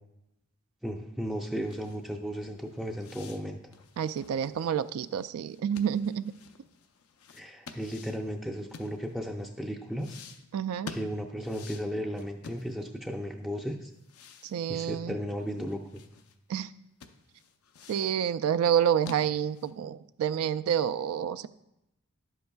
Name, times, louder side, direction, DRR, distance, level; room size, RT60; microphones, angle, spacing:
voice 1, 0.8-3.7 7.3-10.2 10.9-13.9 14.7-16.0, equal, ahead, 1 dB, 0.4 m, -35 dB
sound 1, 1.6-9.4 10.0-13.1 13.4-13.5 13.9-16.4 16.7-16.8 17.0-18.2 18.7-19.8, left 5 dB, 90° left, 0.6 m, -49 dB
voice 2, 4.0-6.3 10.5-10.9 14.4-15.2 16.5-16.7 17.9-21.5, right 8 dB, 75° right, 15 dB, 0.3 m, -28 dB
11.0 x 7.9 x 2.3 m, 0.85 s
head